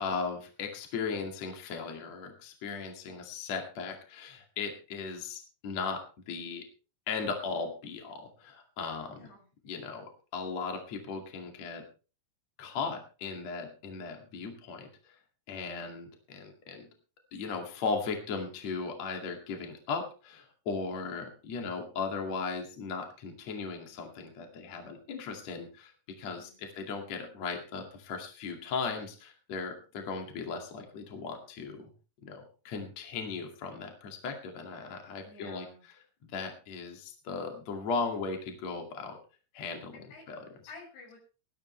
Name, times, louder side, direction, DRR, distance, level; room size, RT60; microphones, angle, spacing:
voice 1, 0.0-6.7 7.1-9.3 9.6-11.8 12.6-15.2 15.5-16.9 17.3-31.9 32.2-35.7 36.3-39.2 39.5-40.5, left 4 dB, 45° left, 3 dB, 3.2 m, -37 dB
voice 2, 9.1-9.4 26.2-26.7 35.2-35.8 40.1-40.2 40.7-41.2, left 3 dB, 80° left, 2 dB, 8.0 m, -51 dB
19.0 x 13.0 x 3.3 m, 0.35 s
omnidirectional pair, 4.7 m